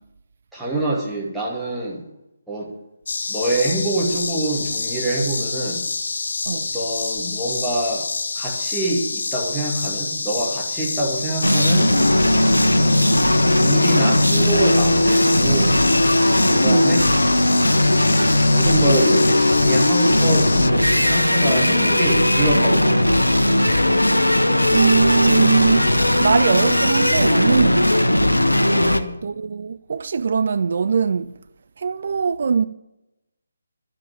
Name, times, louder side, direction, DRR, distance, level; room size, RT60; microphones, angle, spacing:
voice 1, 0.5-2.0 2.5-2.7 3.3-5.9 6.5-8.1 8.4-11.9 13.6-15.8 16.5-17.0 18.5-23.4 28.6-29.2, right 1 dB, ahead, 2.4 m, -25 dB
sound 1, 3.1-20.7, left 4 dB, 55° left, 0.7 m, -27 dB
sound 2, 11.4-29.0, left 1 dB, 85° left, 1.1 m, -17 dB
voice 2, 24.7-28.1 29.2-31.4 31.8-32.7, right 5 dB, 50° right, 0.5 m, -21 dB
12.5 x 7.9 x 8.8 m
figure-of-eight pair, 145°, 0 cm